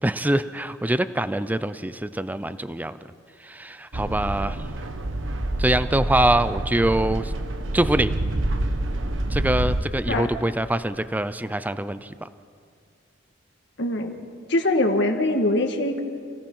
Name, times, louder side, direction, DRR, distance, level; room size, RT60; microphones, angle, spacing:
voice 1, 0.0-3.0 3.4-4.7 5.6-7.3 7.7-8.1 9.3-12.3, right 1 dB, 10° right, 13 dB, 0.5 m, -24 dB
sound 1, 3.9-9.8, right 1 dB, 90° right, 1.3 m, -27 dB
voice 2, 13.8-14.2 14.5-16.0, left 1 dB, 65° left, 4 dB, 1.9 m, -22 dB
29.0 x 17.0 x 5.6 m, 2.3 s
head